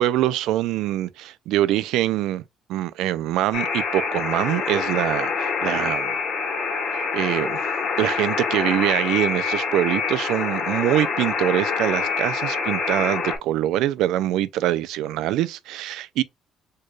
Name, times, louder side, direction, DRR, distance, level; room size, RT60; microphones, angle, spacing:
voice 1, 0.0-2.4 2.7-6.1 6.9-7.6 8.0-16.2, right 13 dB, 85° right, 0.4 m, -24 dB
Alarm, 3.5-13.4, left 5 dB, 60° left, 1.5 m, -26 dB
4.4 x 3.1 x 2.3 m
cardioid pair, 120°, 0 cm